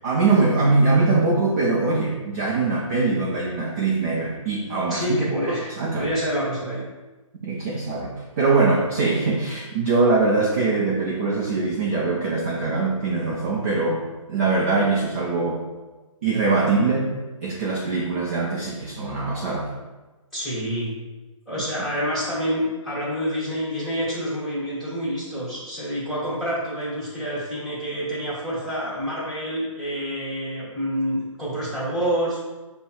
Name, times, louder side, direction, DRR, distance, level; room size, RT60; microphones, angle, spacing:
voice 1, 0.0-5.2 5.8-6.1 7.4-14.0 14.3-15.6 16.2-17.1 17.4-19.7, right 3 dB, 25° right, -3 dB, 0.4 m, -22 dB
voice 2, 4.9-6.8 20.3-20.9 21.5-32.4, equal, ahead, -11 dB, 1.3 m, -27 dB
5.1 x 2.1 x 4.5 m, 1.2 s
hypercardioid pair, 160°, 17 cm